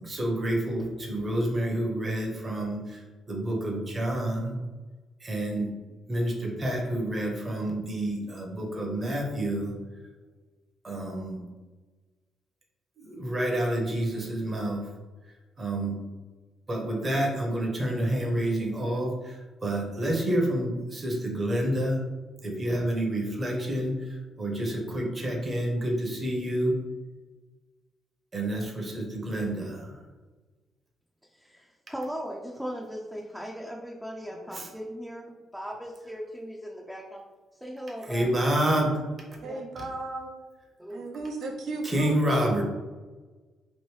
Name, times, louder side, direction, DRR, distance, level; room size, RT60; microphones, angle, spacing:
voice 1, 0.0-4.6 5.2-5.7 6.1-9.7 10.8-11.4 13.0-14.9 15.6-16.0 16.7-22.0 22.4-26.8 28.3-30.0 34.5-34.7 38.0-39.0 39.8-39.9 41.8-42.6, right 1 dB, 30° right, 0 dB, 0.8 m, -28 dB
voice 2, 31.3-37.2 37.6-38.3 39.4-39.6 40.8-41.2, equal, ahead, -2 dB, 0.4 m, -38 dB
voice 3, 39.4-40.3 40.9-42.4, right 3 dB, 75° right, 1 dB, 0.6 m, -35 dB
3.1 x 2.6 x 3.1 m, 1.3 s
cardioid pair, 90°, 0 cm